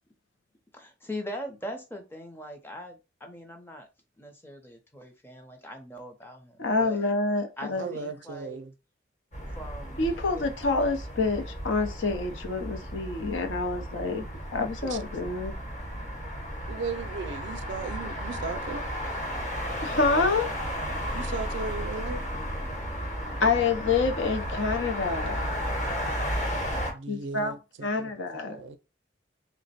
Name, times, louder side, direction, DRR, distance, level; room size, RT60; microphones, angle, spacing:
voice 1, 0.7-3.9 4.2-7.1 7.6-8.6 9.5-10.5, equal, 10° left, 0.6 m, -41 dB
voice 2, 6.6-7.9 10.0-14.2 14.5-15.5 19.8-20.5 23.4-25.5 27.1-27.5 27.8-28.6, left 3 dB, 80° left, 0.7 m, -27 dB
voice 3, 7.7-8.7 14.8-15.0 16.7-18.8 21.1-22.2 26.9-28.2 28.5-28.8, right 4 dB, 70° right, 0.4 m, -36 dB
sound 1, 9.3-26.9, equal, 40° left, 1.1 m, -34 dB
3.4 x 2.1 x 4.1 m
head